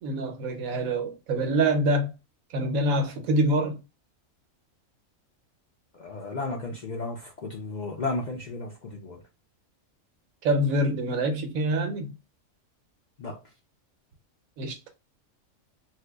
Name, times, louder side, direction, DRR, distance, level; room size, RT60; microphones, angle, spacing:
voice 1, 0.0-2.1 2.5-3.8 10.4-12.1 14.6-14.8, right 1 dB, 90° right, 1.1 m, -25 dB
voice 2, 5.9-9.2 13.2-13.4, left 3 dB, 55° left, 0.5 m, -34 dB
2.8 x 2.6 x 3.3 m
omnidirectional pair, 1.4 m